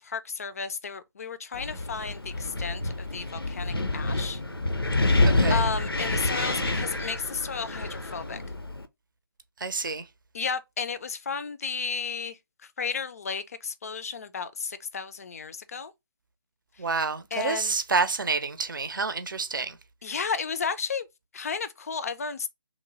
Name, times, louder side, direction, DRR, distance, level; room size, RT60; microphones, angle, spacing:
voice 1, 0.0-4.4 5.5-8.4 10.3-12.4 12.8-15.9 17.3-17.7 20.0-21.1 21.3-22.5, left 5 dB, 40° left, 0.3 m, -33 dB
Wind, 1.5-8.9, left 2 dB, 90° left, 0.5 m, -27 dB
voice 2, 9.6-10.0 16.8-19.7, right 4 dB, 60° right, 0.6 m, -28 dB
3.0 x 2.1 x 3.7 m
figure-of-eight pair, 145°, 12 cm